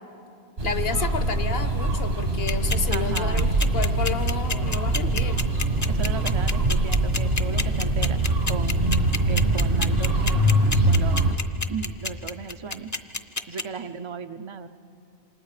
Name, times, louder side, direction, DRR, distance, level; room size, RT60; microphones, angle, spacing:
voice 1, 0.6-5.5, left 5 dB, 65° left, 10 dB, 1.2 m, -31 dB
sound 1, 0.6-11.3, right 1 dB, 75° right, 2.1 m, -24 dB
sound 2, 1.6-10.9, right 4 dB, 60° right, 1.0 m, -31 dB
sound 3, 2.3-13.6, left 3 dB, 20° left, 0.6 m, -28 dB
voice 2, 2.9-3.5 5.9-9.0 9.3-11.4 11.7-12.9 13.5-14.7, right 6 dB, 40° right, 8 dB, 0.4 m, -36 dB
28.0 x 26.0 x 4.9 m, 2.7 s
omnidirectional pair, 1.1 m